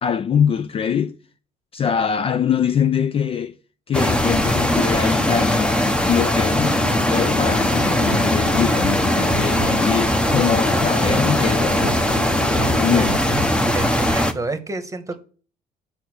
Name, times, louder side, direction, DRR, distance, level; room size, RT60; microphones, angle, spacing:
voice 1, 0.0-1.1 1.7-3.6 3.9-6.8 7.1-12.0 12.8-13.4, left 8 dB, 35° left, 0.4 m, -23 dB
sound 1, 3.9-14.3, left 1 dB, 5° left, 0.8 m, -20 dB
sound 2, 6.6-13.2, left 11 dB, 85° left, 0.9 m, -33 dB
sound 3, 7.8-13.7, right 10 dB, 75° right, 0.7 m, -33 dB
voice 2, 13.7-15.2, right 3 dB, 20° right, 1.1 m, -30 dB
7.8 x 5.7 x 6.3 m
cardioid pair, 110°, 17 cm